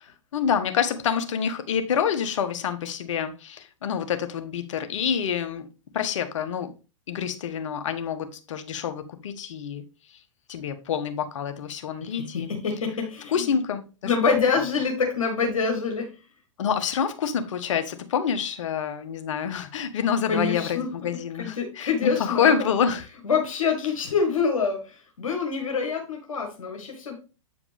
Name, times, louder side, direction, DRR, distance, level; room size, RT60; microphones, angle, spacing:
voice 1, 0.3-5.7 5.9-6.7 7.1-9.8 10.5-12.5 13.3-14.1 16.6-23.0, left 7 dB, 65° left, 1.3 m, -27 dB
voice 2, 12.0-13.6 14.0-16.1 20.3-20.9 21.4-22.6 23.2-27.1, left 5 dB, 85° left, 1.6 m, -26 dB
8.6 x 4.9 x 3.4 m
hypercardioid pair, 110°, 17 cm